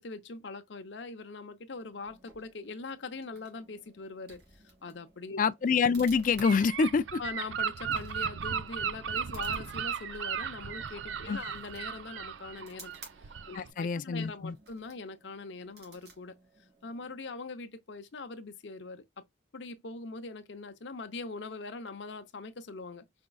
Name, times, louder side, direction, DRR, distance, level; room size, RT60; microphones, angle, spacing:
voice 1, 0.0-4.4 4.8-5.4 7.2-12.9 13.5-16.4 16.8-19.0 19.5-23.0, left 3 dB, 75° left, 0.7 m, -42 dB
sound 1, 1.7-17.3, right 3 dB, 60° right, 2.5 m, -56 dB
voice 2, 5.4-7.2 11.3-11.4 13.5-14.5, left 5 dB, 45° left, 0.4 m, -26 dB
Gull seagull / Wind, 6.4-13.7, right 7 dB, 85° right, 0.5 m, -36 dB
5.1 x 3.6 x 2.3 m
head